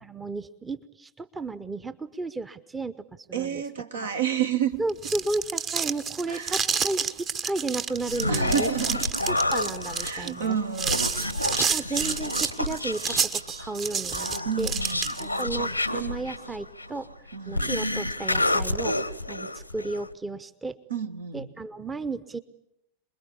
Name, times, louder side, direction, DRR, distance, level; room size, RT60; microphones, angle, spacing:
voice 1, 0.0-3.6 3.9-4.1 4.8-8.7 9.3-10.6 11.2-14.3 14.6-14.7 15.2-17.1 17.4-19.0 19.3-20.8 21.3-22.4, right 3 dB, 15° right, 15 dB, 0.9 m, -33 dB
voice 2, 3.3-4.8 6.3-6.6 8.3-9.0 10.0-11.1 11.5-11.8 14.4-15.1 17.3-17.7 20.9-21.5, right 8 dB, 70° right, 7 dB, 1.6 m, -30 dB
sound 1, 4.8-15.4, right 6 dB, 30° right, 1.1 m, -30 dB
Human voice, 7.9-20.1, left 2 dB, 90° left, 1.0 m, -30 dB
27.5 x 21.5 x 8.5 m, 0.81 s
figure-of-eight pair, 90°, 0 cm